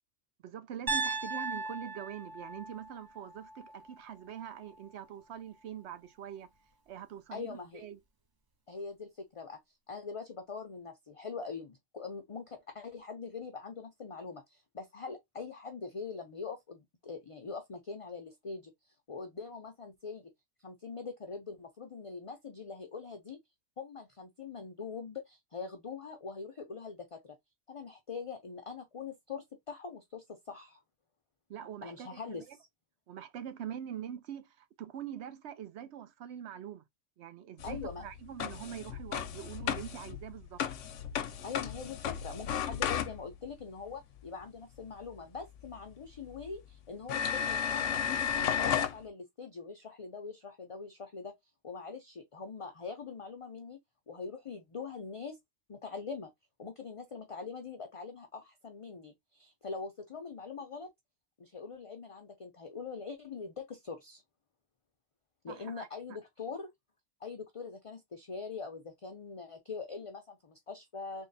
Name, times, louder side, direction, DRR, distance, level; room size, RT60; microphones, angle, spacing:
voice 1, 0.4-6.5 6.9-8.0 31.5-32.2 32.5-32.6 33.1-36.8 37.2-40.6 65.5-65.9, right 9 dB, 70° right, 0.9 m, -44 dB
Piano, 0.9-4.9, right 3 dB, 25° right, 0.5 m, -38 dB
voice 2, 7.3-7.8 8.7-9.6 9.9-20.3 20.6-23.4 23.8-27.4 27.7-30.8 31.8-32.7 37.6-38.0 41.4-48.0 48.3-51.3 51.6-53.8 54.1-55.4 55.7-56.3 56.6-60.9 61.4-64.2 65.4-66.7 67.2-71.3, left 5 dB, 40° left, 0.5 m, -43 dB
sound 1, 37.6-43.5 45.6-45.7 46.4-46.5 47.1-49.0, left 8 dB, 85° left, 1.0 m, -34 dB
3.6 x 2.2 x 3.9 m
omnidirectional pair, 1.2 m